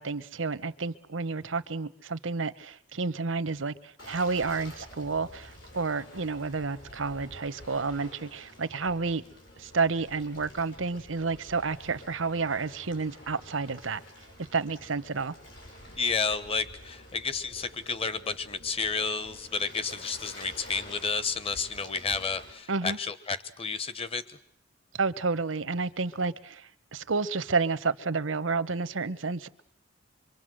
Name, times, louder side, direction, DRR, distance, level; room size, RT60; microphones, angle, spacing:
voice 1, 0.0-9.2 9.6-14.0 14.5-15.3 22.7-23.0 24.9-29.6, right 4 dB, 90° right, 14 dB, 1.0 m, -30 dB
Waves surf, 4.0-22.5, left 1 dB, 80° left, 6.7 m, -49 dB
voice 2, 15.9-24.2, left 5 dB, 30° left, 13 dB, 1.1 m, -31 dB
26.0 x 23.5 x 7.8 m, 0.67 s
head